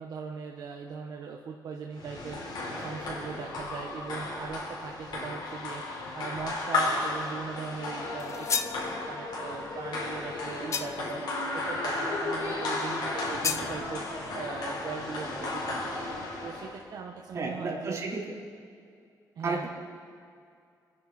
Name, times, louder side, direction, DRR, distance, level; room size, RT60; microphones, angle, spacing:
voice 1, 0.0-8.5 8.9-18.0 19.3-19.7, right 5 dB, 70° right, 0 dB, 1.3 m, -40 dB
sound 1, 2.0-16.8, left 2 dB, 85° left, 4.4 m, -34 dB
sound 2, 8.2-8.8 10.7-11.2 13.4-13.7, left 6 dB, 45° left, 0.8 m, -31 dB
voice 2, 17.3-18.2 19.4-19.7, right 3 dB, 45° right, -4 dB, 3.9 m, -32 dB
27.5 x 10.5 x 4.4 m, 2.4 s
wide cardioid pair, 145°, 7 cm